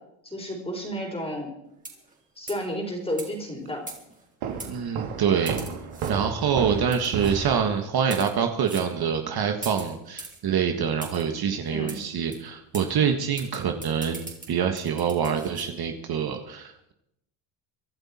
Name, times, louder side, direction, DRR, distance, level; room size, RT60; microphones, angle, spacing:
voice 1, 0.2-1.5 2.4-3.8 11.7-11.9, equal, 10° left, 1 dB, 4.2 m, -31 dB
sound 1, 1.8-2.1 2.5-2.7 3.2-3.3 3.9-4.2 4.6-4.7 5.5-6.1 6.9-7.3 8.0-8.3 8.7-8.9 9.6-10.4 11.0-11.2 11.9-12.0 12.3-12.4 12.7-12.9 13.4-15.7, right 3 dB, 15° right, 3.6 m, -40 dB
Walk footsteps, 4.4-7.7, right 6 dB, 80° right, 2.7 m, -33 dB
voice 2, 4.7-5.6 6.1-16.9, right 7 dB, 45° right, 5 dB, 1.6 m, -26 dB
24.5 x 11.5 x 4.3 m, 0.80 s
cardioid pair, 120°, 50 cm